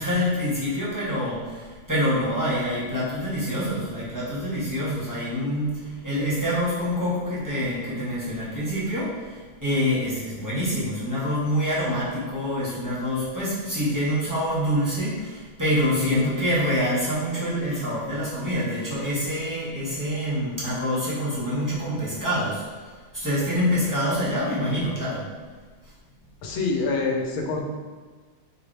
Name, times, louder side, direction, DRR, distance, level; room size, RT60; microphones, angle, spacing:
voice 1, 0.0-25.3, equal, 10° right, -9 dB, 1.0 m, -26 dB
voice 2, 26.4-27.6, left 3 dB, 80° left, 1 dB, 1.5 m, -26 dB
4.7 x 3.3 x 3.2 m, 1.4 s
omnidirectional pair, 2.2 m